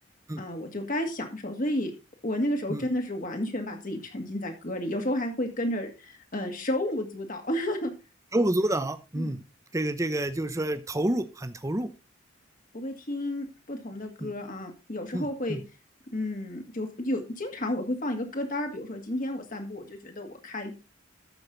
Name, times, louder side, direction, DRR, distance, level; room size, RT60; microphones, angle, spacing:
voice 1, 0.4-1.9 2.2-7.9 9.2-9.3 12.7-15.6 16.1-20.7, left 1 dB, 45° left, 4 dB, 2.2 m, -31 dB
voice 2, 8.3-9.4 9.7-11.9 14.2-14.3 15.1-15.6, right 1 dB, 15° right, 12 dB, 0.7 m, -28 dB
13.0 x 6.4 x 3.9 m, 0.29 s
head